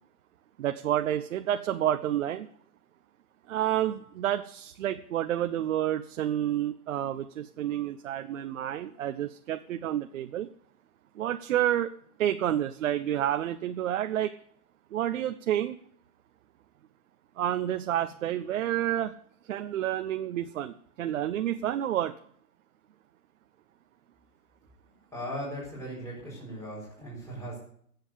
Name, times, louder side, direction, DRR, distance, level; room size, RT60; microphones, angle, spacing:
voice 1, 0.6-2.5 3.5-10.5 11.2-11.9 12.2-14.3 14.9-15.8 17.4-19.1 19.5-22.1, right 11 dB, 55° right, 8 dB, 1.0 m, -29 dB
voice 2, 25.1-27.6, equal, 5° left, -6 dB, 6.9 m, -38 dB
14.5 x 8.0 x 8.3 m, 0.63 s
hypercardioid pair, 135°, 46 cm